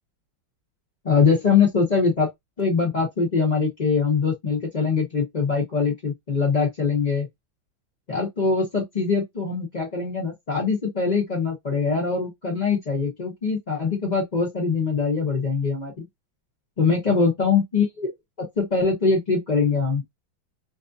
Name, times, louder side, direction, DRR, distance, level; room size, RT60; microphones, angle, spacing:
voice 1, 1.0-2.3 2.6-7.3 8.1-16.0 16.8-18.1 18.4-20.0, left 5 dB, 75° left, 0.4 m, -23 dB
3.2 x 2.5 x 2.4 m
omnidirectional pair, 2.2 m